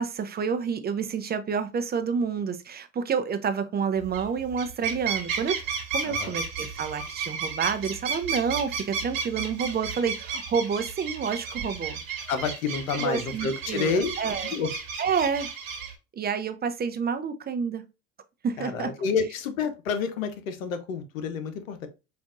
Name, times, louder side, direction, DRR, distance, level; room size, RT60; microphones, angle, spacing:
voice 1, 0.0-5.6 5.9-12.0 12.9-14.6 15.0-15.5 16.1-17.8 18.4-18.9, right 6 dB, 25° right, 0.5 m, -29 dB
sound 1, 4.0-4.3 4.5-15.9, right 6 dB, 80° right, 1.4 m, -33 dB
voice 2, 12.3-14.1 14.4-14.7 18.6-21.9, left 5 dB, 85° left, 0.8 m, -29 dB
5.2 x 2.5 x 2.4 m
hypercardioid pair, 75°, 39 cm